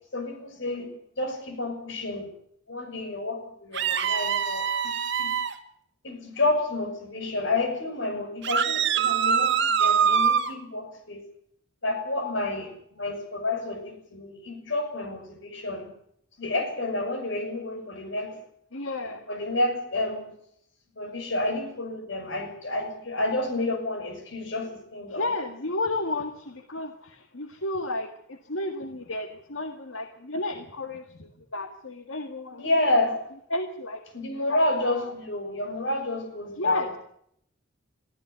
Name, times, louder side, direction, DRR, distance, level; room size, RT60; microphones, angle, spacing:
voice 1, 0.1-2.3 2.7-5.3 6.0-11.2 11.8-15.9 16.4-18.4 19.3-20.3 21.0-25.3 32.5-33.2 34.1-36.9, left 2 dB, 65° left, 7 dB, 6.4 m, -30 dB
sound 1, 3.7-5.5 8.4-10.5, right 7 dB, 65° right, 2.0 m, -24 dB
voice 2, 18.7-19.2 25.1-32.6 33.5-34.0 34.3-35.1 36.6-36.9, left 2 dB, 85° left, 7 dB, 1.8 m, -32 dB
22.5 x 15.0 x 8.2 m, 0.70 s
head